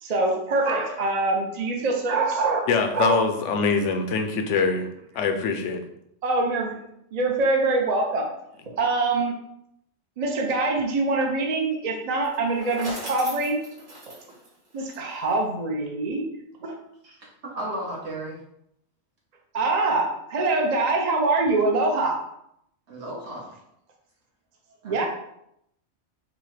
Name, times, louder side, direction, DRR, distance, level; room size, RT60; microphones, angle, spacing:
voice 1, 0.0-2.7 2.9-3.2 6.2-6.8 7.1-8.3 8.7-9.3 10.2-13.6 14.1-14.2 14.7-16.3 16.6-16.8 19.5-22.2 24.8-25.1, right 3 dB, 45° right, 1 dB, 0.6 m, -24 dB
voice 2, 2.7-4.9 5.1-5.8, left 4 dB, 85° left, 6 dB, 1.0 m, -23 dB
Bicycle, 12.2-15.4, right 1 dB, 85° right, 1.7 m, -39 dB
voice 3, 17.5-18.4 22.9-23.5 24.8-25.1, right 1 dB, 70° right, -4 dB, 1.6 m, -34 dB
6.0 x 2.2 x 3.2 m, 0.76 s
omnidirectional pair, 1.2 m